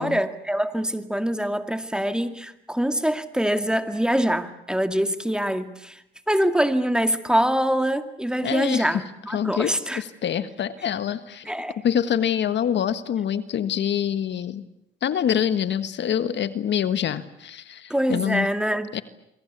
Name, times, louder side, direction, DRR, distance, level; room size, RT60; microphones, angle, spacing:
voice 1, 0.0-6.0 6.3-10.0 11.5-11.7 17.9-18.9, equal, 5° right, 8 dB, 2.3 m, -24 dB
voice 2, 8.4-9.0 9.3-11.5 11.8-14.6 15.0-18.5 18.9-19.0, left 9 dB, 65° left, 12 dB, 1.6 m, -25 dB
27.5 x 23.5 x 8.4 m, 0.80 s
cardioid pair, 90°, 20 cm